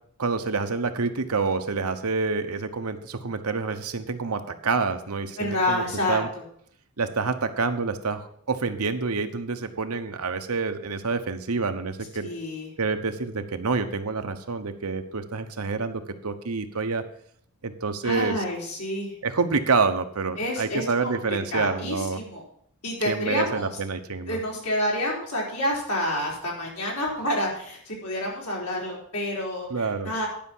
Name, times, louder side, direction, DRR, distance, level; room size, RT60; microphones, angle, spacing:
voice 1, 0.2-5.8 6.1-6.3 7.0-8.2 8.5-12.3 12.8-17.0 17.6-18.4 19.2-22.2 23.1-24.4 29.7-30.2, right 4 dB, 80° right, 8 dB, 1.0 m, -27 dB
voice 2, 5.4-6.4 12.2-12.7 18.0-19.1 20.4-21.2 21.5-22.4 22.8-23.7 24.3-30.3, left 1 dB, 90° left, -3 dB, 4.4 m, -28 dB
10.5 x 5.6 x 7.3 m, 0.66 s
head